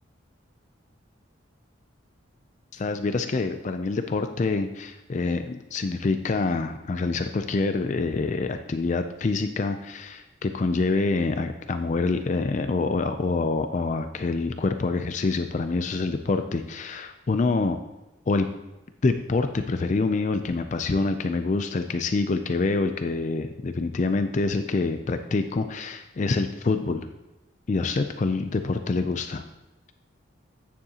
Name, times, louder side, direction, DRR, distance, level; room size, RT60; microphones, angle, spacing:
voice 1, 2.7-17.8 18.3-18.5 19.0-27.1 27.7-29.4, left 3 dB, 40° left, 8 dB, 0.4 m, -26 dB
9.4 x 7.1 x 2.9 m, 0.99 s
head